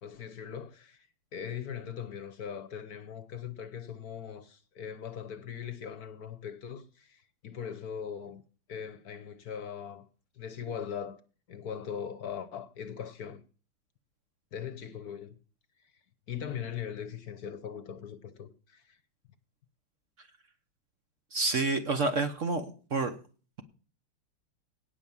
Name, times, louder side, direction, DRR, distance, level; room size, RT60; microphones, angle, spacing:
voice 1, 0.0-8.4 8.7-10.0 10.3-11.2 11.5-13.4 14.5-15.3 16.3-19.0, left 8 dB, 60° left, 1.2 m, -40 dB
voice 2, 21.3-22.7 22.9-23.1, right 3 dB, 45° right, 1.2 m, -28 dB
17.5 x 6.1 x 7.2 m
omnidirectional pair, 2.1 m